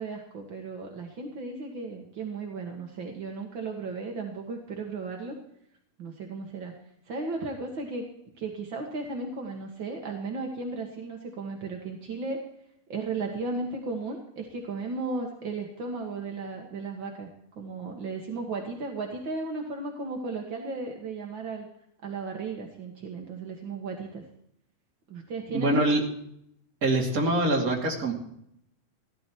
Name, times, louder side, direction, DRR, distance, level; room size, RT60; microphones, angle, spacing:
voice 1, 0.0-5.4 6.0-6.7 7.1-8.0 8.4-12.4 12.9-17.3 17.5-21.7 22.0-24.3 25.1-25.8, right 3 dB, 60° right, 2 dB, 1.2 m, -35 dB
voice 2, 25.5-26.0 26.8-28.1, right 1 dB, 30° right, 0 dB, 2.1 m, -24 dB
16.5 x 12.5 x 4.5 m, 0.73 s
omnidirectional pair, 4.5 m